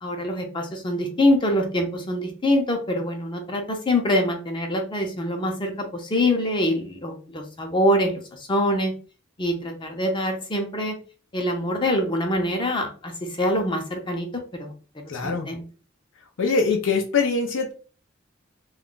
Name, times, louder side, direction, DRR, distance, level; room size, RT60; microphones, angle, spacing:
voice 1, 0.0-8.9 9.4-11.0 11.3-14.3 14.5-14.7 15.2-15.6, left 1 dB, 25° left, 2 dB, 0.6 m, -24 dB
voice 2, 15.1-15.5 16.4-17.7, left 4 dB, 75° left, 2 dB, 0.5 m, -23 dB
2.3 x 2.1 x 3.7 m, 0.37 s
head